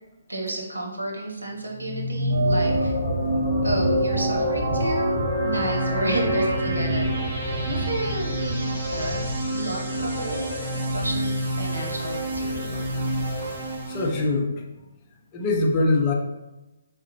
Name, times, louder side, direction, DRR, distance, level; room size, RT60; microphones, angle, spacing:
voice 1, 0.3-2.9 3.6-5.1 5.4-12.7, right 2 dB, 80° right, -1 dB, 0.8 m, -32 dB
sound 1, 1.7-14.2, right 1 dB, 35° right, 1.4 m, -28 dB
sound 2, 2.3-13.6, equal, ahead, 0.8 m, -29 dB
voice 2, 13.9-14.5 15.3-16.1, left 2 dB, 25° left, 0 dB, 0.5 m, -22 dB
3.7 x 2.1 x 2.7 m, 1.0 s
figure-of-eight pair, 135°, 0 cm